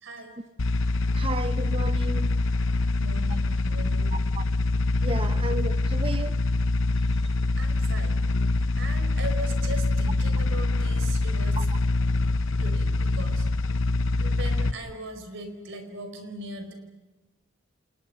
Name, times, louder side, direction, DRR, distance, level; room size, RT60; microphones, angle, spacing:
voice 1, 0.0-0.3 3.0-4.2 7.6-8.2 8.8-11.7 12.6-13.5 14.2-16.7, right 1 dB, 60° right, 4.7 m, -39 dB
sound 1, 0.6-14.7, left 2 dB, 65° left, 0.8 m, -25 dB
voice 2, 1.1-2.3 4.3-4.4 5.0-6.4 11.6-11.7, right 2 dB, 25° right, 1.0 m, -33 dB
30.0 x 28.0 x 5.7 m
head